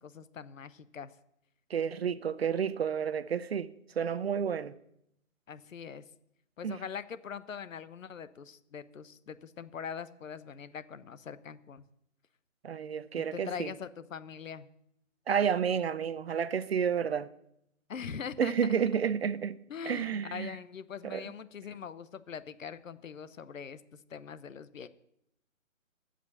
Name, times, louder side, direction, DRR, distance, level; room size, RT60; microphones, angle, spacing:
voice 1, 0.0-1.1 5.5-6.0 6.6-11.8 13.3-14.7 17.9-18.5 19.7-24.9, left 7 dB, 70° left, 0.9 m, -42 dB
voice 2, 1.7-3.7 4.0-4.7 6.6-6.8 12.6-13.7 15.3-17.3 18.4-19.6 19.9-20.6 21.0-21.2, right 7 dB, 50° right, 0.6 m, -30 dB
14.5 x 5.2 x 6.6 m
hypercardioid pair, 150°, 41 cm